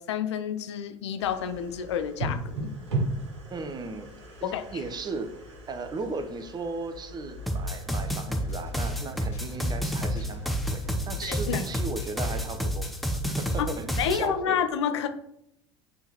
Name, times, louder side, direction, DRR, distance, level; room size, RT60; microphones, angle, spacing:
voice 1, 0.0-2.7 4.4-4.6 11.2-11.6 13.6-15.1, left 8 dB, 75° left, 8 dB, 0.6 m, -29 dB
sound 1, 1.2-12.3, right 2 dB, 80° right, 1.6 m, -38 dB
voice 2, 3.5-4.1 4.4-5.3 5.7-12.9 13.3-14.6, right 3 dB, 30° right, 8 dB, 0.8 m, -36 dB
sound 2, 7.5-14.2, equal, ahead, 0.8 m, -30 dB
sound 3, 8.5-13.8, left 4 dB, 50° left, 1.6 m, -41 dB
8.7 x 3.7 x 3.0 m, 0.75 s
hypercardioid pair, 75°, 15 cm